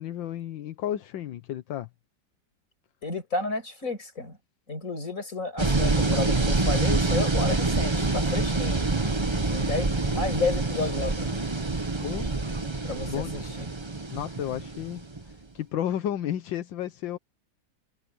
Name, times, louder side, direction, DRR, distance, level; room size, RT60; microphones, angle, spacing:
voice 1, 0.0-1.9 12.0-12.3 12.8-13.3 14.1-15.1 15.6-17.2, left 11 dB, 85° left, 1.7 m, -32 dB
voice 2, 3.0-4.4 4.7-8.9 9.5-11.4 12.8-13.7, left 3 dB, 45° left, 6.4 m, -32 dB
sound 1, 5.6-15.3, right 3 dB, 20° right, 0.9 m, -26 dB
omnidirectional pair, 2.0 m